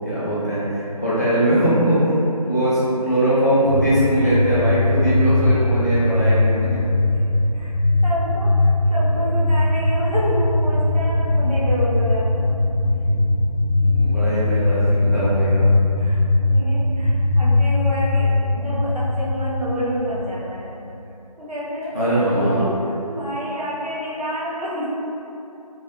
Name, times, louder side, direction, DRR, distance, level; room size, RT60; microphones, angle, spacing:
voice 1, 0.0-6.8 12.8-13.5 13.8-15.7 21.9-22.7, right 1 dB, 25° left, -11 dB, 0.6 m, -21 dB
sound 1, 3.6-20.5, left 2 dB, 10° right, 1.2 m, -20 dB
voice 2, 4.1-4.5 7.2-7.7 8.0-12.5 16.0-20.8 21.4-21.9 22.4-22.7 23.1-24.9, equal, 70° right, -8 dB, 1.0 m, -28 dB
3.4 x 3.0 x 2.5 m, 2.8 s
figure-of-eight pair, 165°, 20 cm